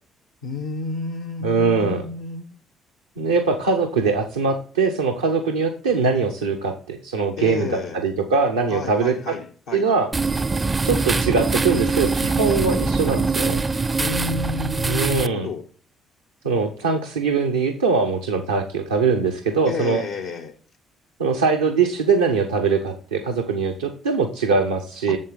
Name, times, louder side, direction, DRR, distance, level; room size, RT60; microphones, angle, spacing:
voice 1, 0.4-2.5 7.4-8.0 8.7-9.9 14.0-15.7 19.6-20.5 25.1-25.2, left 3 dB, 75° left, 0.8 m, -31 dB
voice 2, 1.4-2.0 3.2-9.4 9.7-10.1 10.8-13.6 14.9-15.5 16.4-20.0 21.2-25.2, right 5 dB, 90° right, 0.7 m, -22 dB
sound 1, 10.1-15.3, right 4 dB, 30° right, 0.5 m, -23 dB
7.5 x 7.3 x 3.8 m
hypercardioid pair, 50°, 0 cm